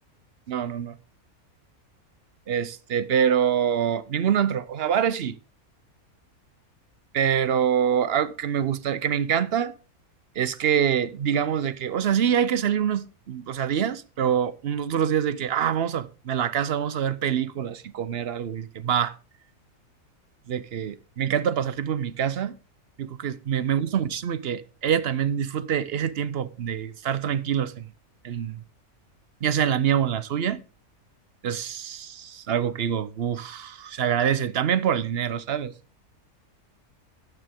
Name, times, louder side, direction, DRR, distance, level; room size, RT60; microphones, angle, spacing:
voice 1, 0.5-0.9 2.5-5.4 7.1-9.7 10.4-19.1 20.5-22.5 23.0-27.9 28.2-28.6 29.4-30.6 31.4-35.7, right 8 dB, 55° right, 0.8 m, -25 dB
14.0 x 9.6 x 3.6 m
omnidirectional pair, 1.5 m